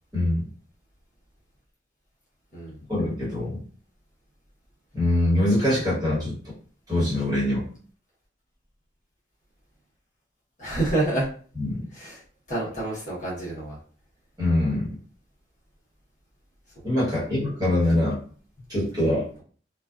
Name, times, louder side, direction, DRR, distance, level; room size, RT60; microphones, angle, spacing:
voice 1, 0.1-0.4 2.9-3.6 4.9-6.3 6.9-7.6 11.6-11.8 14.4-14.9 16.8-18.2 18.7-19.2, left 1 dB, 20° right, -8 dB, 1.2 m, -23 dB
voice 2, 10.6-11.3 11.9-12.2 12.5-13.8, right 2 dB, 40° left, -7 dB, 1.0 m, -28 dB
2.4 x 2.3 x 2.4 m, 0.43 s
head